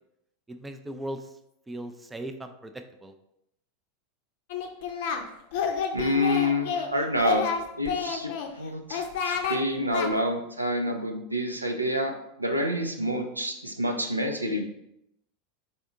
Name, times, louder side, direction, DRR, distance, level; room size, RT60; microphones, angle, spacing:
voice 1, 0.5-1.4 1.7-3.1, right 1 dB, 10° right, 7 dB, 0.4 m, -38 dB
Singing, 4.5-5.2 5.5-6.9 7.2-8.5 8.9-9.6 9.9-10.1, left 6 dB, 55° left, 0.6 m, -29 dB
voice 2, 5.9-7.5 7.8-8.3 8.6-14.6, left 1 dB, 85° right, 4 dB, 0.5 m, -28 dB
4.3 x 3.6 x 3.4 m, 0.80 s
figure-of-eight pair, 85°, 0 cm